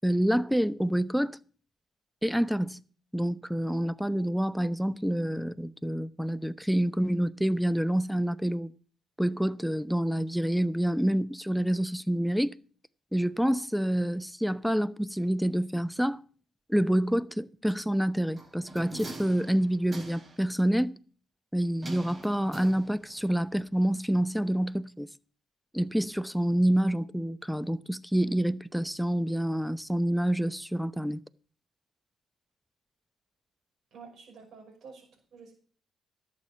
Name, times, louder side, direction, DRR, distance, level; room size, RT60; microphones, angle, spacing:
voice 1, 0.0-1.4 2.2-2.8 3.1-8.7 9.2-12.5 13.1-16.2 16.7-21.0 21.5-25.1 25.7-31.2, equal, ahead, 0.7 m, -27 dB
sound 1, 18.4-20.5 21.8-23.3 23.6-23.7, right 1 dB, 40° right, 4.7 m, -43 dB
voice 2, 33.9-35.5, right 5 dB, 65° right, 5.7 m, -50 dB
11.5 x 7.8 x 7.2 m
supercardioid pair, 55°, 0 cm